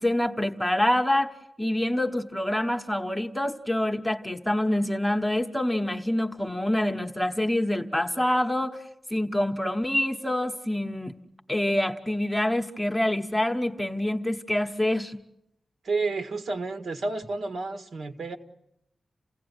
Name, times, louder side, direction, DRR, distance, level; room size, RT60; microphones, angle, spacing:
voice 1, 0.0-8.8 9.1-11.1 11.5-15.2, left 1 dB, 5° left, 4 dB, 1.1 m, -26 dB
voice 2, 15.8-18.4, right 3 dB, 65° right, 8 dB, 1.8 m, -30 dB
29.0 x 17.0 x 9.6 m, 0.81 s
wide cardioid pair, 160°, 0 cm